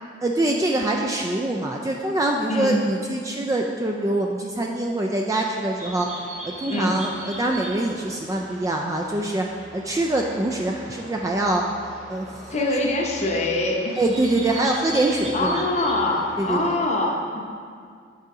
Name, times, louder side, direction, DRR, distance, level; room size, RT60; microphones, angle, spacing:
voice 1, 0.2-6.1 6.4-9.4 9.7-11.6 12.1-12.8 14.0-15.6 16.4-16.8, right 1 dB, 20° right, 1 dB, 0.3 m, -24 dB
voice 2, 2.5-2.8 6.7-7.0 12.5-13.9 15.3-17.2, left 2 dB, 40° left, 1 dB, 0.7 m, -23 dB
sound 1, 5.8-16.6, equal, 40° right, 1.3 m, -40 dB
8.3 x 3.8 x 4.7 m, 2.2 s
head